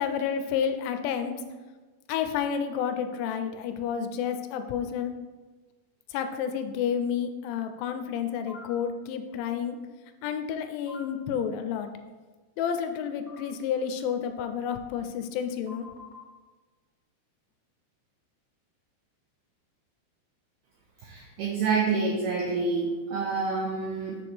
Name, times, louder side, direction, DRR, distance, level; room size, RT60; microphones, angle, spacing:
voice 1, 0.0-1.4 2.1-5.1 6.1-9.8 10.2-11.9 12.6-15.9, left 8 dB, 85° left, 8 dB, 2.8 m, -30 dB
sound 1, 8.5-8.7 10.9-11.0 13.3-13.4 15.7-16.2, left 3 dB, 50° left, 0.8 m, -45 dB
voice 2, 21.0-24.2, right 4 dB, 90° right, -2 dB, 2.2 m, -28 dB
7.0 x 6.0 x 3.3 m, 1.3 s
omnidirectional pair, 5.4 m